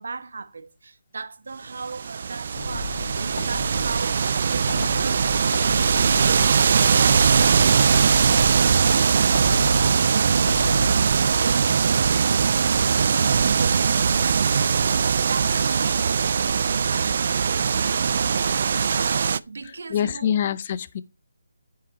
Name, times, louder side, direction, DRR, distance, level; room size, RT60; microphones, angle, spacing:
voice 1, 0.0-14.9 15.3-16.3 16.7-17.3 18.9-20.4, right 4 dB, 70° right, 1.2 m, -37 dB
sound 1, 1.8-19.4, right 6 dB, 55° right, 0.4 m, -21 dB
sound 2, 2.6-11.6, left 3 dB, 60° left, 4.8 m, -34 dB
voice 2, 19.6-21.0, left 9 dB, 40° left, 0.6 m, -26 dB
9.8 x 5.8 x 4.0 m
figure-of-eight pair, 155°, 0 cm